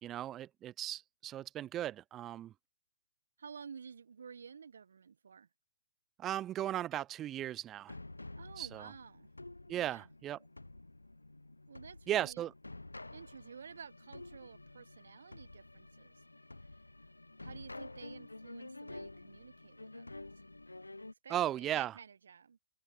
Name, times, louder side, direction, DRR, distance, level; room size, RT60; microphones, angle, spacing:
voice 1, 0.0-2.5 6.2-7.9 8.6-8.9 9.7-10.4 12.1-12.5 21.3-21.9, right 12 dB, 20° right, 0.4 m, -36 dB
voice 2, 3.4-5.5 8.3-9.3 9.7-10.1 11.7-12.4 13.1-16.2 16.6-16.8 17.4-20.4 21.2-22.6, right 6 dB, 65° right, 1.1 m, -52 dB
sound 1, 7.9-21.1, left 2 dB, 85° left, 0.5 m, -50 dB
figure-of-eight pair, 120°, 0 cm